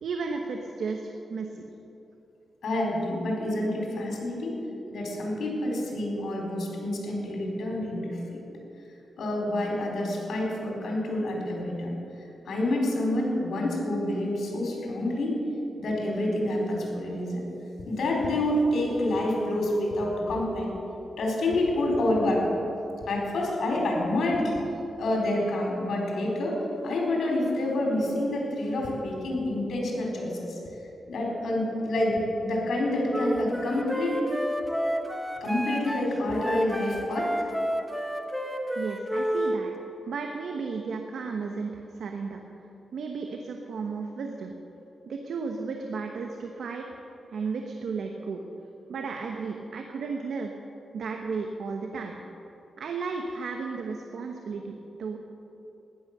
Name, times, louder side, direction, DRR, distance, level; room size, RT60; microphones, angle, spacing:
voice 1, 0.0-1.6 38.7-39.7 40.0-42.4 42.9-44.5 45.1-46.9 47.3-48.4 48.9-50.5 50.9-52.1 52.8-55.2, right 4 dB, 75° right, 3 dB, 1.1 m, -34 dB
voice 2, 2.6-4.6 4.9-8.4 9.2-11.9 12.4-15.4 15.8-17.4 17.8-20.7 21.2-22.5 23.0-24.6 25.0-30.6 31.1-34.2 35.4-37.3, left 1 dB, 75° left, -2 dB, 4.2 m, -28 dB
Wind instrument woodwind instrument, 33.1-39.6, equal, 5° right, 1.4 m, -30 dB
15.5 x 11.5 x 6.7 m, 3.0 s
cardioid pair, 75°, 0 cm